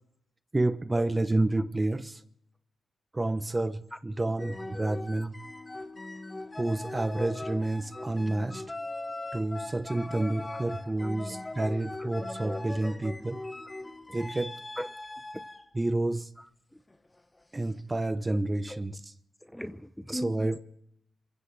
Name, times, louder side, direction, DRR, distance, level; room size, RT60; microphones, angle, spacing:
voice 1, 0.5-2.2 3.1-5.5 6.6-8.6 9.3-13.4 14.1-14.5 15.7-16.3 17.5-19.0 20.1-20.6, right 2 dB, 25° right, 1.1 m, -29 dB
sound 1, 4.4-15.7 16.9-17.2, left 2 dB, 20° left, 1.4 m, -40 dB
voice 2, 11.0-11.4 12.0-12.2 12.8-12.9 13.8-13.9 14.8-14.9 15.3-15.4 16.4-16.8 18.7-18.8 19.4-20.6, equal, 5° left, 0.8 m, -40 dB
26.5 x 15.5 x 3.4 m
cardioid pair, 65°, 0 cm